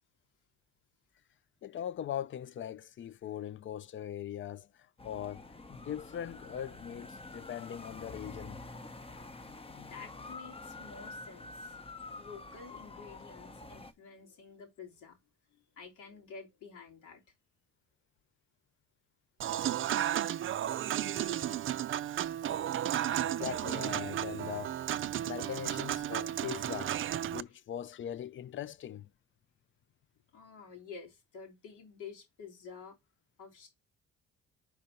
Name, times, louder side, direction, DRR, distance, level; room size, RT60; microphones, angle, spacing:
voice 1, 1.6-8.6 22.9-25.0 25.2-27.0 27.3-29.1, left 10 dB, 40° left, 0.4 m, -41 dB
sound 1, 5.0-13.9, left 3 dB, 20° left, 0.8 m, -47 dB
voice 2, 9.8-11.8 12.1-15.2 15.5-17.2 27.5-27.6 30.3-33.0 33.4-33.7, left 5 dB, 85° left, 3.2 m, -50 dB
Human voice / Acoustic guitar / Piano, 19.4-27.4, right 11 dB, 45° right, 0.4 m, -33 dB
5.1 x 4.7 x 4.2 m
cardioid pair, 90°, 30 cm